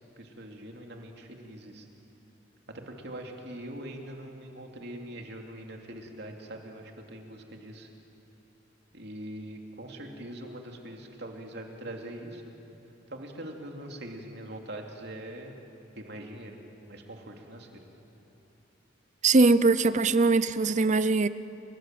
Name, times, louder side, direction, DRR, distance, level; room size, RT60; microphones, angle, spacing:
voice 1, 0.2-1.9 2.7-7.9 8.9-12.4 13.1-15.5 16.0-16.6 16.9-17.9, right 1 dB, 55° right, 2 dB, 2.9 m, -42 dB
voice 2, 19.2-21.3, right 3 dB, 40° right, 15 dB, 0.6 m, -21 dB
29.5 x 23.0 x 7.7 m, 3.0 s
head